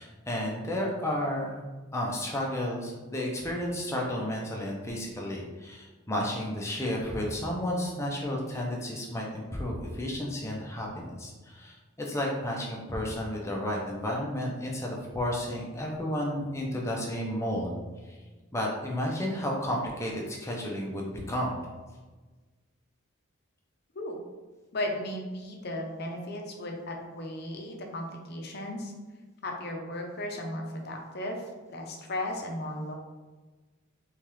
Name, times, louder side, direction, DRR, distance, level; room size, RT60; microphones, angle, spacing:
voice 1, 0.0-1.6 1.9-17.7 18.1-18.2 18.5-21.6, left 1 dB, 15° left, -2 dB, 0.6 m, -32 dB
voice 2, 24.7-28.9 29.4-32.9, left 1 dB, 50° left, 1 dB, 0.6 m, -35 dB
3.7 x 3.5 x 3.1 m, 1.3 s
head